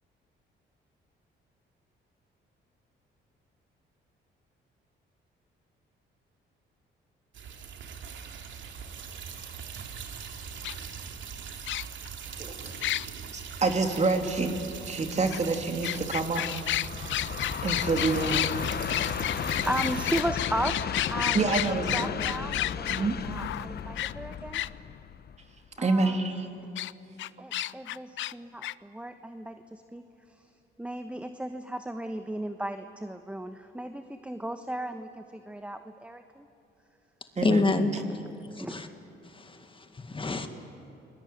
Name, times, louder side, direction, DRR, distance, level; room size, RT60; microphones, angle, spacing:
sound 1, 7.3-20.2, right 6 dB, 70° right, 2.7 m, -41 dB
sound 2, 10.6-10.7 11.7-12.1 12.8-13.1 15.3-15.4 15.8-24.7 26.8-26.9 27.2-28.3 28.6-28.7, left 14 dB, 75° left, 0.6 m, -31 dB
voice 1, 12.4-12.8 13.3-14.6 14.8-16.4 17.6-18.5 21.3-22.1 22.9-23.2 25.8-26.5 37.4-37.6, right 3 dB, 35° right, 5 dB, 3.0 m, -27 dB
Train, 16.5-25.7, left 8 dB, 55° left, 1.0 m, -34 dB
voice 2, 19.0-24.6 25.8-26.4 27.4-30.0 30.3-30.5 30.8-36.5 38.0-38.2 38.6-38.8, right 1 dB, 5° right, 8 dB, 1.2 m, -36 dB
voice 3, 37.4-37.9 38.6-38.9 39.4-40.5, left 3 dB, 25° left, 7 dB, 2.0 m, -27 dB
29.0 x 21.0 x 9.5 m, 2.9 s
cardioid pair, 90°, 20 cm